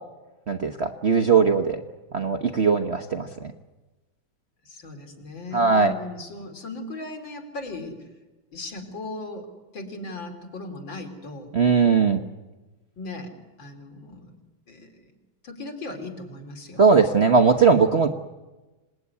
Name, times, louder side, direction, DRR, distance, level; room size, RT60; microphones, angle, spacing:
voice 1, 0.5-1.8 2.1-3.5 5.5-5.9 11.5-12.2 16.8-18.1, right 5 dB, 45° right, 6 dB, 1.0 m, -19 dB
voice 2, 4.6-8.0 8.5-9.5 9.7-11.5 13.0-13.3 13.6-14.4 14.7-14.9 15.4-16.9, left 2 dB, 70° left, 4 dB, 4.0 m, -37 dB
26.5 x 19.5 x 9.6 m, 1.2 s
omnidirectional pair, 2.2 m